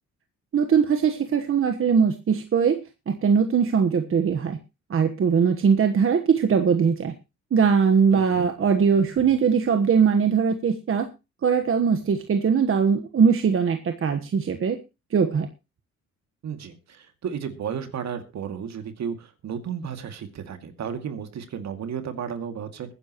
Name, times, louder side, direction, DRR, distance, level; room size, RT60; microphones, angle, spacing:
voice 1, 0.5-2.8 3.1-4.6 4.9-7.1 7.5-11.1 11.4-14.8 15.1-15.5, right 6 dB, 45° right, 6 dB, 1.3 m, -21 dB
voice 2, 16.4-22.9, right 7 dB, 65° right, 8 dB, 2.4 m, -33 dB
21.5 x 10.0 x 3.0 m, 0.27 s
cardioid pair, 90°, 30 cm